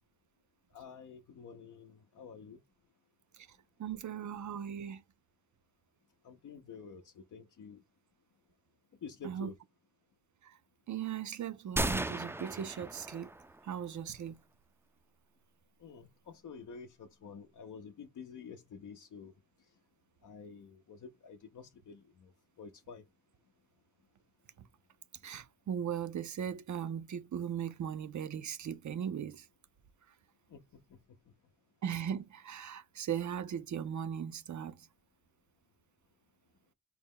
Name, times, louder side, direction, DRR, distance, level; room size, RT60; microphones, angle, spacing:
voice 1, 0.7-2.6 6.2-7.8 9.0-9.6 15.8-19.3 20.2-22.3 22.6-23.0 30.5-30.6 30.9-31.0, left 5 dB, 75° left, 0.5 m, -49 dB
voice 2, 3.8-5.0 9.2-9.5 10.4-10.6 10.9-13.3 13.6-14.4 25.2-29.4 31.8-34.7, right 8 dB, 65° right, 0.5 m, -38 dB
sound 1, 11.8-13.6, right 1 dB, 10° right, 0.3 m, -35 dB
4.5 x 2.1 x 3.5 m
cardioid pair, 65°, 31 cm